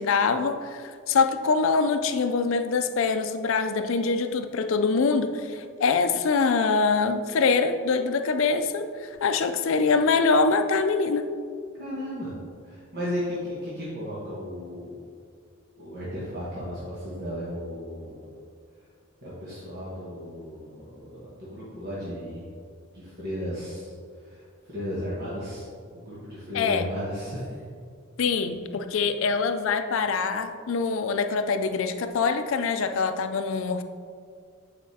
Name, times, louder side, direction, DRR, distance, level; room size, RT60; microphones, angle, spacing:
voice 1, 0.0-11.3 26.5-26.9 28.2-33.8, left 4 dB, 65° left, 8 dB, 0.4 m, -24 dB
voice 2, 11.7-12.3 12.6-15.0 15.8-18.3 19.2-22.5 22.9-25.7 25.9-27.6, equal, 45° right, -8 dB, 1.2 m, -35 dB
8.3 x 4.8 x 2.8 m, 2.2 s
head